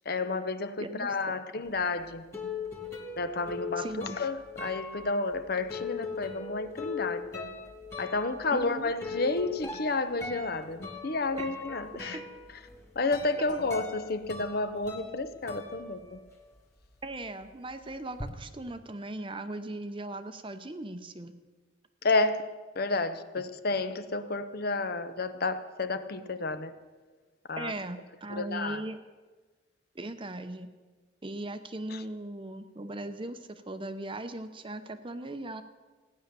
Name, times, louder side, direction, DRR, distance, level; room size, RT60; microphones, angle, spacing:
voice 1, 0.0-2.3 3.2-7.5 8.0-12.2 13.0-16.2 22.0-22.4 22.8-26.7 27.5-27.7 28.3-28.8 31.9-32.0, left 3 dB, 50° left, 11 dB, 0.8 m, -31 dB
voice 2, 0.8-1.3 3.8-4.2 8.5-8.9 11.3-11.4 12.1-12.2 17.0-21.4 27.5-29.0 29.9-30.7 31.2-35.6, right 2 dB, 25° right, 10 dB, 0.7 m, -38 dB
sound 1, 1.8-16.6 16.8-18.3, left 4 dB, 15° left, 1.9 m, -40 dB
15.5 x 10.0 x 6.8 m, 1.3 s
head